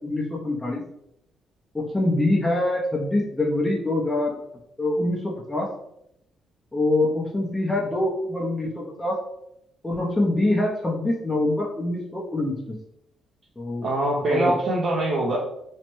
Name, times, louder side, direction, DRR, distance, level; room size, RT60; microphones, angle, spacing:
voice 1, 0.0-0.8 1.7-4.4 4.8-5.7 6.7-9.2 9.8-12.6 13.6-13.9 14.2-14.5, left 1 dB, 10° left, -4 dB, 0.5 m, -24 dB
voice 2, 13.8-15.4, right 1 dB, 60° right, -3 dB, 0.5 m, -23 dB
3.0 x 2.1 x 3.0 m, 0.79 s
cardioid pair, 90°, 0 cm